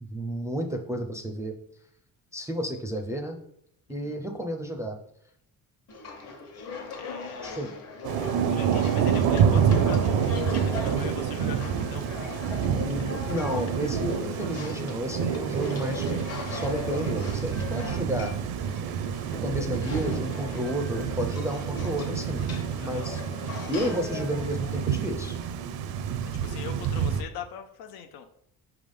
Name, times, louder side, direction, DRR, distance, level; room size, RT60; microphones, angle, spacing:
voice 1, 0.0-1.5 2.3-3.4 3.9-5.0 7.4-7.7 12.8-16.2 16.5-18.3 19.4-22.5 22.8-23.2 23.7-25.4, equal, 10° right, 2 dB, 0.4 m, -31 dB
sound 1, 5.9-25.5, left 4 dB, 45° left, 1.1 m, -40 dB
voice 2, 6.9-7.5 8.1-12.0 22.8-23.1 26.2-28.3, left 7 dB, 90° left, 6 dB, 0.6 m, -41 dB
Thunder / Rain, 8.0-27.2, right 7 dB, 85° right, 0.6 m, -28 dB
5.8 x 3.5 x 5.3 m, 0.71 s
cardioid pair, 165°, 35 cm